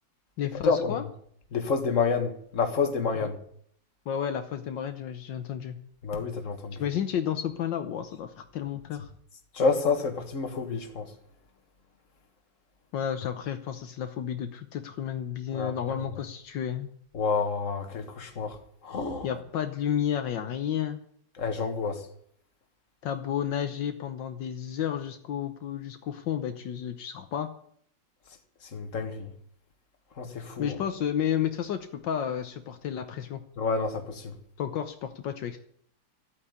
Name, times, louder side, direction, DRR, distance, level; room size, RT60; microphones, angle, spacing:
voice 1, 0.4-1.0 3.1-3.3 4.1-5.8 6.8-9.1 12.9-16.9 19.2-21.0 23.0-27.5 30.6-33.4 34.6-35.6, left 9 dB, 75° left, 1.6 m, -31 dB
voice 2, 1.5-3.4 6.0-6.8 9.5-11.1 15.5-15.8 17.1-18.6 18.8-19.3 21.4-22.0 28.7-29.3 30.2-30.8 33.6-34.3, left 4 dB, 45° left, 2.0 m, -28 dB
13.0 x 8.8 x 9.6 m
omnidirectional pair, 2.0 m